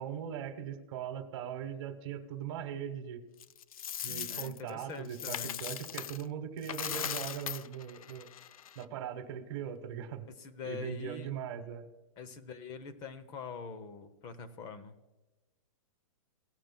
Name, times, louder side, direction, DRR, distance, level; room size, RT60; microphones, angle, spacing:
voice 1, 0.0-3.2 4.0-8.3 8.7-10.3 10.6-11.9, right 9 dB, 45° right, 7 dB, 1.2 m, -40 dB
Coin (dropping), 3.4-6.2 6.6-8.8, left 9 dB, 85° left, 0.5 m, -39 dB
voice 2, 4.1-5.6 10.6-11.3 12.2-14.9, left 5 dB, 25° left, 11 dB, 0.8 m, -44 dB
17.5 x 9.1 x 2.2 m, 1.1 s
hypercardioid pair, 155°, 18 cm